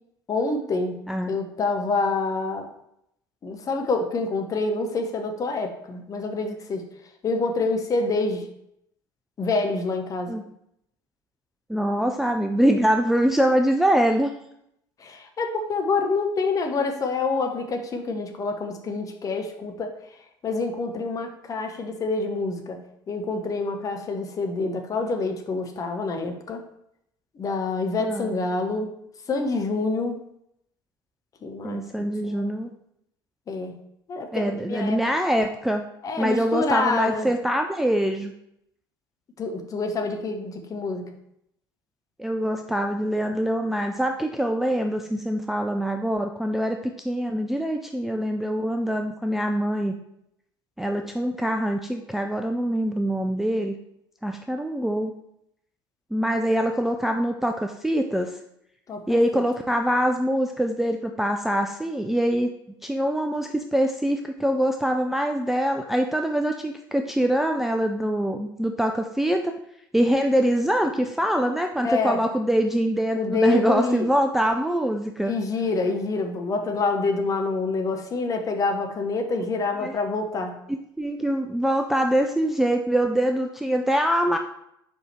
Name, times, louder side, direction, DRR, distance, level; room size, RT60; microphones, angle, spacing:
voice 1, 0.3-2.7 3.4-6.9 7.2-8.5 9.4-10.3 15.0-19.9 20.4-26.6 27.3-28.9 29.3-30.2 31.4-31.9 32.2-32.5 33.5-33.8 34.1-35.0 36.0-37.3 39.4-41.1 58.9-59.4 71.8-72.2 73.1-74.1 75.2-80.6, left 3 dB, 30° left, 5 dB, 0.9 m, -27 dB
voice 2, 11.7-14.3 28.0-28.4 31.6-32.7 34.3-35.9 36.2-38.3 42.2-49.9 50.8-53.8 54.2-55.1 56.1-58.4 59.1-62.5 62.8-69.5 69.9-75.4 79.8-79.9 81.0-84.4, equal, ahead, 4 dB, 0.4 m, -24 dB
4.9 x 4.8 x 4.3 m, 0.77 s
figure-of-eight pair, 65°, 12 cm